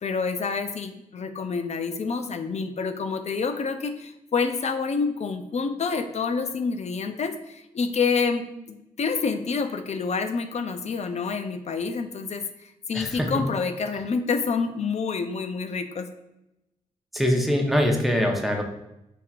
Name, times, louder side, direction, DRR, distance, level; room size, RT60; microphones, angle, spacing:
voice 1, 0.0-12.4 12.9-16.1, left 5 dB, 50° left, 8 dB, 0.5 m, -28 dB
voice 2, 12.9-13.4 17.1-18.6, equal, ahead, 1 dB, 0.9 m, -23 dB
5.7 x 2.9 x 2.5 m, 0.88 s
cardioid pair, 50°, 14 cm